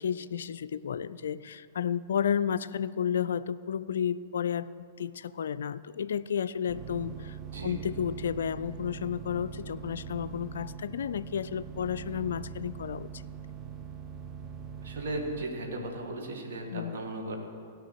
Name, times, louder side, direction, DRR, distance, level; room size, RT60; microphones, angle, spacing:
voice 1, 0.0-4.7 5.0-13.2 16.7-17.1, left 8 dB, 60° left, 16 dB, 0.3 m, -32 dB
sound 1, 6.7-15.4, right 8 dB, 25° right, 0.7 m, -42 dB
voice 2, 14.8-17.4, right 1 dB, 60° right, 1 dB, 2.0 m, -36 dB
16.5 x 5.8 x 6.3 m, 2.3 s
figure-of-eight pair, 100°, 0 cm